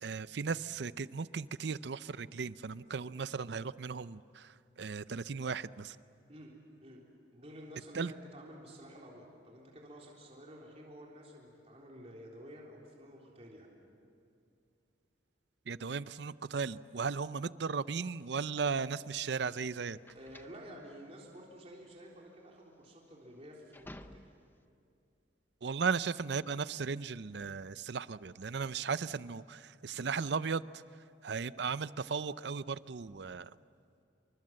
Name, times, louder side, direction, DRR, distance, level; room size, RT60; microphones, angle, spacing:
voice 1, 0.0-6.0 7.9-8.1 15.7-20.0 25.6-30.6 31.2-33.5, right 5 dB, 65° right, 16 dB, 0.5 m, -36 dB
voice 2, 7.3-13.7 20.1-24.3, equal, 35° right, -2 dB, 3.7 m, -51 dB
sound 1, 18.7-24.6, left 1 dB, 10° left, 0.7 m, -55 dB
28.0 x 24.5 x 7.6 m, 2.5 s
head